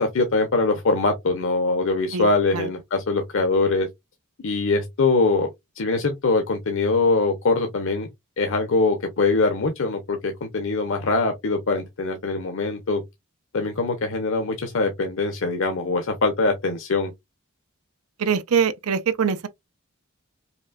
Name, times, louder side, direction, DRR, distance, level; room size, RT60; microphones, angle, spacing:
voice 1, 0.0-3.9 4.4-5.5 5.8-8.1 8.4-13.0 13.5-17.1, left 3 dB, 65° left, 0.8 m, -23 dB
voice 2, 18.2-19.5, right 6 dB, 85° right, 0.6 m, -23 dB
5.2 x 2.7 x 2.3 m
head